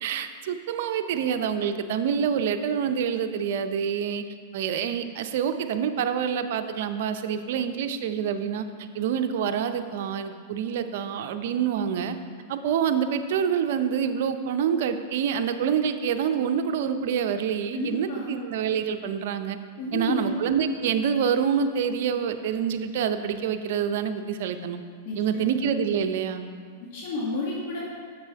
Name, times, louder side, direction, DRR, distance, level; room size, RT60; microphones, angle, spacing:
voice 1, 0.0-4.2 4.5-8.7 8.9-12.2 12.5-19.6 19.9-24.8 25.2-26.5, right 7 dB, 65° right, 8 dB, 0.5 m, -27 dB
voice 2, 17.7-18.3 19.8-20.3 25.1-25.4 26.8-27.8, left 2 dB, 60° left, -5 dB, 1.6 m, -31 dB
6.8 x 6.7 x 4.6 m, 2.1 s
hypercardioid pair, 125°, 0 cm